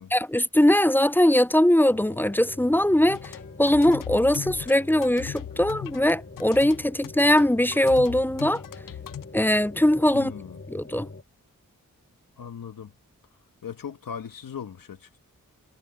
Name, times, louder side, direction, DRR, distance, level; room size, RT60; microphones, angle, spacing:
voice 1, 0.1-8.6 9.3-10.3 10.7-11.1, left 1 dB, 5° left, 0.4 m, -21 dB
sound 1, 1.9-11.2, left 3 dB, 40° left, 5.4 m, -44 dB
sound 2, 3.1-9.2, left 11 dB, 75° left, 0.5 m, -38 dB
voice 2, 10.1-10.6 12.4-12.9 13.6-15.2, left 7 dB, 90° left, 1.5 m, -38 dB
cardioid pair, 50°, 33 cm